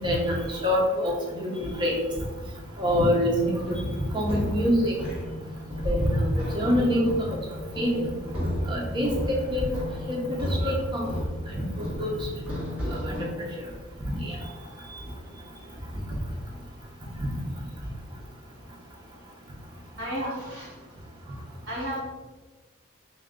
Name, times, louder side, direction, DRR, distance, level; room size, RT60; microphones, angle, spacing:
voice 1, 0.0-2.0 2.8-3.8 4.1-4.9 5.8-7.4 7.8-8.1 8.7-9.7 10.1-10.2 10.5-11.1 11.5-12.2 13.0-13.5 14.1-14.4, equal, 20° right, -2 dB, 0.7 m, -26 dB
sound 1, 3.4-13.3, equal, 5° right, 1.2 m, -33 dB
voice 2, 20.0-20.9 21.7-22.0, equal, 50° right, -7 dB, 1.3 m, -33 dB
3.4 x 2.5 x 3.6 m, 1.3 s
head